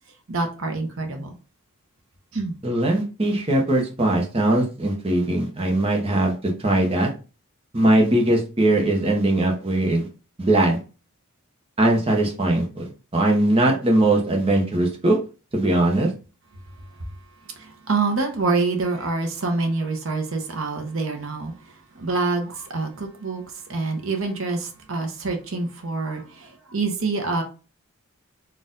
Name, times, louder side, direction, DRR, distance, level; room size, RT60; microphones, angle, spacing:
voice 1, 0.3-1.3 2.3-2.5 17.6-21.5 22.0-23.4 23.7-27.4, right 3 dB, 65° right, 4 dB, 0.8 m, -26 dB
voice 2, 2.6-7.1 7.7-10.1 10.4-10.8 11.8-15.2 15.5-16.1, right 1 dB, 25° right, 0 dB, 0.8 m, -20 dB
4.2 x 2.4 x 3.8 m, 0.33 s
head